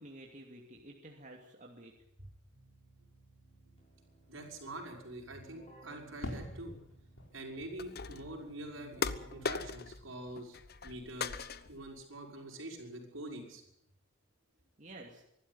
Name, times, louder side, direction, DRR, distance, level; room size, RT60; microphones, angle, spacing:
voice 1, 0.0-1.9 14.8-15.2, right 1 dB, 40° right, 0 dB, 2.6 m, -51 dB
Keyboard (musical), 2.0-10.3, right 2 dB, 30° left, 6.7 m, -60 dB
voice 2, 4.3-6.7 7.3-10.6 10.8-13.6, right 1 dB, 75° right, 1 dB, 6.0 m, -45 dB
Fireworks, 6.2-10.6 10.8-11.6, left 1 dB, 70° left, 4.3 m, -49 dB
sound 1, 7.8-8.4 9.0-10.1 10.4-10.9 11.2-11.9, left 5 dB, 50° left, 1.0 m, -38 dB
24.0 x 12.5 x 9.9 m, 0.78 s
head